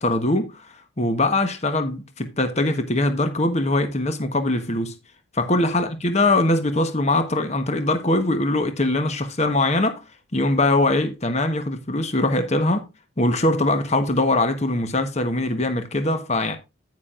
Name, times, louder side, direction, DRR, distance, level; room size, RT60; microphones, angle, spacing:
voice 1, 0.0-4.9 5.3-10.0 10.3-12.8 13.2-16.6, left 2 dB, 35° left, 1.1 m, -22 dB
9.9 x 9.5 x 2.5 m
head